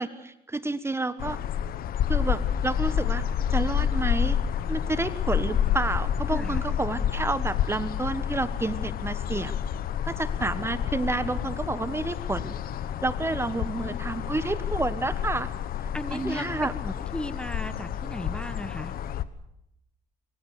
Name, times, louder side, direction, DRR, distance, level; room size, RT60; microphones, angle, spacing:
voice 1, 0.0-1.4 2.1-3.2 3.5-4.4 4.7-9.5 10.1-12.5 13.0-15.5 16.1-16.7, right 2 dB, 15° right, 13 dB, 1.4 m, -30 dB
sound 1, 1.2-19.2, left 9 dB, 60° left, 1.4 m, -29 dB
voice 2, 6.3-6.6 13.5-14.0 15.9-18.9, left 1 dB, 5° left, 13 dB, 1.3 m, -36 dB
24.5 x 23.0 x 6.7 m, 0.79 s
cardioid pair, 110°, 17 cm